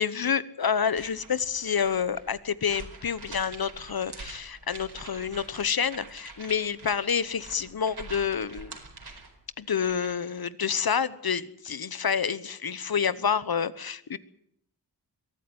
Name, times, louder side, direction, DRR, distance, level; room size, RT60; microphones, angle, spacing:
voice 1, 0.0-8.8 9.6-14.2, left 7 dB, 60° left, 17 dB, 1.1 m, -28 dB
sound 1, 0.8-10.3, right 3 dB, 70° right, 4.6 m, -46 dB
22.5 x 13.5 x 9.7 m, 0.72 s
wide cardioid pair, 60°, 40 cm